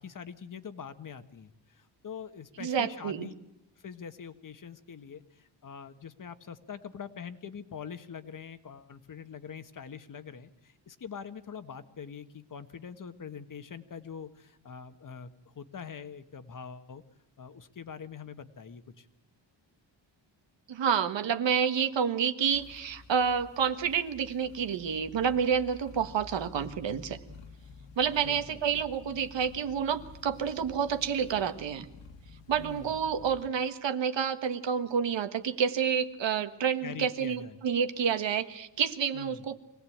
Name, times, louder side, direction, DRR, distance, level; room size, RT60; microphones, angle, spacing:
voice 1, 0.0-3.3 3.8-17.0 17.4-19.1 28.2-28.6 32.6-33.0 36.8-37.6 39.1-39.4, left 7 dB, 45° left, 10 dB, 1.5 m, -44 dB
voice 2, 2.6-3.3 20.7-27.2 28.0-31.9 32.5-39.6, right 7 dB, 70° right, 9 dB, 1.6 m, -29 dB
sound 1, 22.5-33.5, left 4 dB, 80° left, 2.7 m, -50 dB
24.5 x 17.5 x 8.7 m, 0.90 s
cardioid pair, 110°, 45 cm